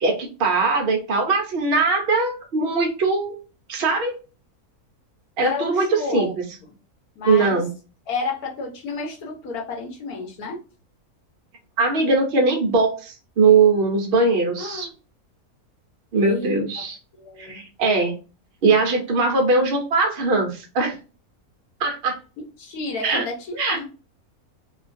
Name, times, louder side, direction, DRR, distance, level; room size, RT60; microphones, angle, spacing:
voice 1, 0.0-3.4 3.7-4.2 5.4-5.9 6.1-6.3 7.3-7.7 11.8-14.9 16.1-17.0 17.4-18.1 18.6-21.0 21.8-22.2 23.0-23.2 23.6-23.8, right 3 dB, 60° right, 3 dB, 0.6 m, -20 dB
voice 2, 5.4-6.7 7.1-7.6 8.1-10.6 14.6-14.9 16.1-16.8 17.1-17.6 22.6-23.8, left 4 dB, 80° left, 0 dB, 1.4 m, -31 dB
3.0 x 2.3 x 2.5 m, 0.33 s
omnidirectional pair, 1.6 m